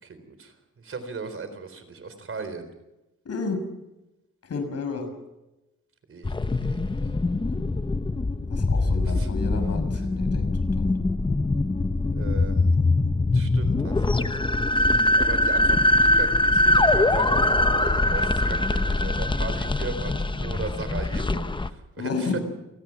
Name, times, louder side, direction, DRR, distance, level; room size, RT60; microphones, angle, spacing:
voice 1, 0.0-2.7 6.1-7.1 9.0-9.3 9.9-10.0 12.1-12.8 13.3-14.4 14.7-14.9 15.1-22.4, right 4 dB, 45° right, 10 dB, 4.0 m, -37 dB
voice 2, 3.2-3.6 4.4-5.1 7.5-7.8 8.5-10.9 22.0-22.4, left 4 dB, 55° left, 7 dB, 6.2 m, -31 dB
sound 1, 6.2-21.7, left 2 dB, 15° left, 0.9 m, -23 dB
28.5 x 18.5 x 5.9 m, 0.97 s
cardioid pair, 100°, 29 cm